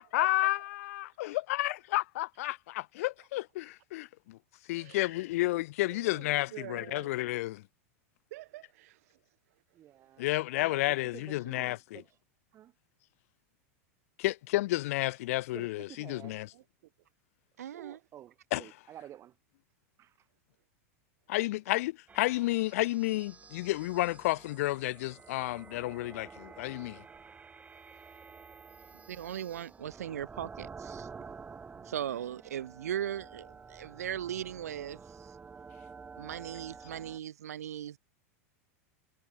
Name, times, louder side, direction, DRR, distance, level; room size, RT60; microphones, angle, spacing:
voice 1, 0.0-4.4 4.7-7.6 10.2-12.0 14.2-16.5 18.5-18.6 21.3-27.0, left 18 dB, 70° left, 1.3 m, -31 dB
voice 2, 4.7-5.3 5.8-7.2 8.3-9.2 9.5-10.2 16.5-16.6 27.9-28.5 28.8-29.0 31.7-32.4 36.0-36.1, right 18 dB, 70° right, 7.8 m, -50 dB
voice 3, 9.7-12.2 12.5-12.7 15.5-16.4 17.6-19.4 20.0-20.3, right 11 dB, 35° right, 6.7 m, -51 dB
voice 4, 17.6-18.0 29.1-31.1 31.9-35.0 36.2-38.0, right 10 dB, 85° right, 3.9 m, -38 dB
sound 1, 22.1-37.2, right 5 dB, 15° right, 6.0 m, -50 dB
hypercardioid pair, 115°, 8 cm